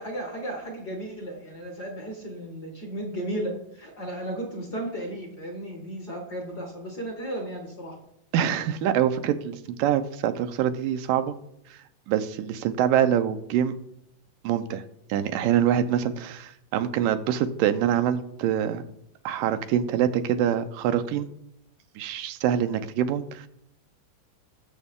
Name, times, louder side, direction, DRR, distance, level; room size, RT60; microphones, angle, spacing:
voice 1, 0.0-7.9, right 1 dB, 40° left, 1 dB, 1.8 m, -34 dB
voice 2, 8.3-11.4 11.7-13.7 14.4-14.8 15.1-18.8 19.3-21.3 22.0-23.5, right 9 dB, 85° right, 9 dB, 2.4 m, -25 dB
18.5 x 7.3 x 3.7 m, 0.75 s
omnidirectional pair, 3.8 m